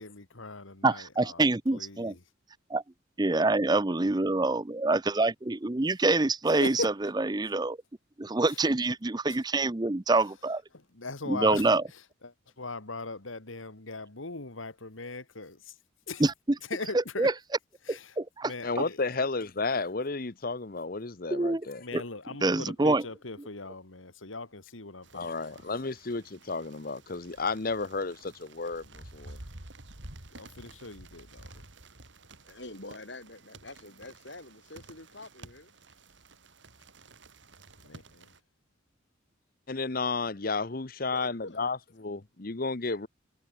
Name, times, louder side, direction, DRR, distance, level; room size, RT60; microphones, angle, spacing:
voice 1, 0.0-1.4 1.7-2.2 6.6-6.9 8.5-8.6 9.3-9.4 10.7-11.7 12.2-15.8 16.1-16.2 16.7-17.3 17.8-18.2 18.4-19.0 21.8-25.7 30.4-31.5 37.8-38.3, left 3 dB, 90° left, 2.6 m, -40 dB
voice 2, 0.8-2.1 2.7-2.8 3.2-7.8 8.2-10.6 11.3-11.8 16.2-16.3 16.9-17.3 17.9-18.5 21.3-21.7 21.9-22.0 22.4-23.0, right 2 dB, 20° right, 0.6 m, -26 dB
voice 3, 18.6-21.8 25.1-29.4 39.7-43.1, left 3 dB, 45° left, 1.0 m, -32 dB
sound 1, 25.0-38.4, right 2 dB, 70° right, 3.5 m, -51 dB
voice 4, 32.4-35.7 41.1-41.6, left 2 dB, 65° left, 5.6 m, -46 dB
head